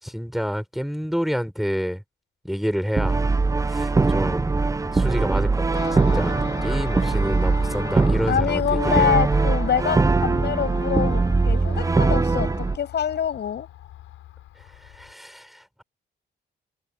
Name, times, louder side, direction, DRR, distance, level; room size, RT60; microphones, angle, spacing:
voice 1, 0.0-2.0 2.4-3.2 3.7-9.2 14.7-15.8, equal, ahead, 5.0 m, -29 dB
Brass instrument, 3.0-12.8, right 3 dB, 15° right, 0.6 m, -21 dB
Car passing by, 5.7-15.1, left 14 dB, 90° left, 6.7 m, -40 dB
voice 2, 8.3-13.7, left 8 dB, 60° left, 7.1 m, -25 dB
cardioid pair, 90°, 20 cm